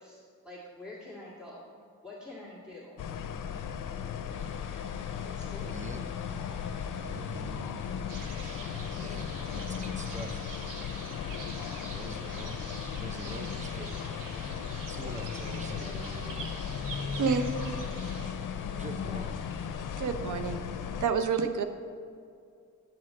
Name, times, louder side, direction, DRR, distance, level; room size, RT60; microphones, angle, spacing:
voice 1, 0.0-1.7 2.0-3.0 5.4-5.8, left 2 dB, ahead, -6 dB, 2.0 m, -46 dB
sound 1, 3.0-21.1, left 7 dB, 80° left, 0.6 m, -36 dB
sound 2, 4.3-19.8, left 3 dB, 40° left, 1.5 m, -51 dB
voice 2, 5.7-6.0 7.0-7.7 9.0-10.4 11.9-12.6 13.0-14.0 14.9-16.4 18.8-19.4, right 2 dB, 25° right, 7 dB, 0.7 m, -44 dB
sound 3, 8.1-18.3, right 4 dB, 90° right, 1.1 m, -46 dB
voice 3, 20.0-20.7 21.0-21.6, right 5 dB, 70° right, 7 dB, 0.8 m, -28 dB
9.2 x 4.4 x 7.5 m, 2.3 s
cardioid pair, 90°, 31 cm